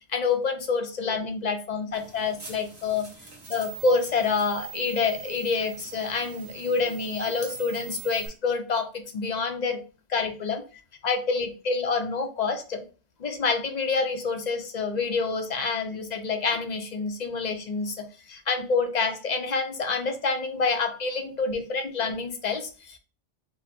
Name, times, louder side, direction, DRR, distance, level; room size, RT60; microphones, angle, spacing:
voice 1, 0.1-3.1 3.5-9.8 10.1-10.6 11.0-12.8 13.2-23.0, left 4 dB, 45° left, 6 dB, 0.7 m, -27 dB
sound 1, 1.9-8.3, right 8 dB, 60° right, 1.6 m, -43 dB
4.8 x 2.1 x 4.2 m, 0.35 s
omnidirectional pair, 1.2 m